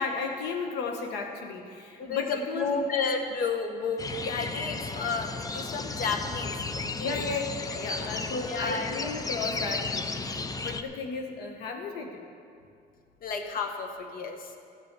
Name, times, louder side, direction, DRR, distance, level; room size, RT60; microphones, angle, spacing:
voice 1, 0.0-2.9 7.0-7.4 7.7-12.2, left 4 dB, 90° left, 4 dB, 1.2 m, -34 dB
voice 2, 2.0-7.2 7.8-8.1 8.3-9.0 13.2-14.5, left 4 dB, 55° left, 5 dB, 1.3 m, -32 dB
sound 1, 4.0-10.8, left 3 dB, 20° left, 0.6 m, -34 dB
15.0 x 7.4 x 6.6 m, 2.4 s
cardioid pair, 110°, 17 cm